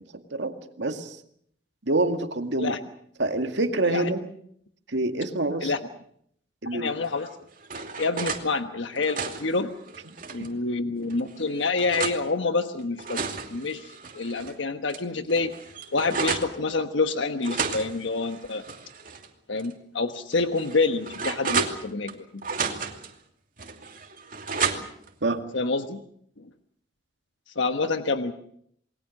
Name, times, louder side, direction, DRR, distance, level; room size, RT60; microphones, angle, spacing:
voice 1, 0.3-1.2 1.9-2.8 3.2-4.2 4.9-5.7 6.6-6.9 25.2-25.4, right 2 dB, 70° right, 6 dB, 2.1 m, -26 dB
voice 2, 6.7-7.3 7.7-9.7 10.3-15.5 15.9-18.7 19.5-22.4 25.5-26.0 27.5-28.3, left 3 dB, 85° left, 7 dB, 1.3 m, -27 dB
sound 1, 7.2-8.4 8.9-10.5 11.1-12.2 12.8-14.5 14.9-15.0 15.3-16.5 17.4-19.3 19.6-19.7 20.3-22.1 22.4-23.1 23.6-25.1, right 5 dB, 45° right, 2.7 m, -32 dB
28.5 x 21.0 x 6.5 m, 0.67 s
head